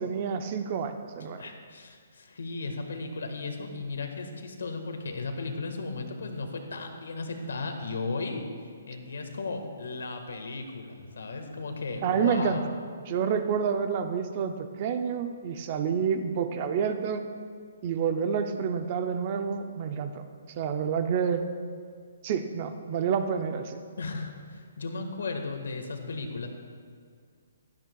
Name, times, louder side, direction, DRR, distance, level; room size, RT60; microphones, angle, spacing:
voice 1, 0.0-1.4 12.0-12.6 13.1-17.2 17.8-20.2 20.6-21.5 22.2-23.8, right 7 dB, 25° right, 8 dB, 0.4 m, -28 dB
voice 2, 1.4-8.4 8.9-12.6 24.0-26.5, left 3 dB, 85° left, 4 dB, 1.5 m, -35 dB
15.5 x 12.0 x 2.3 m, 2.1 s
hypercardioid pair, 180°, 0 cm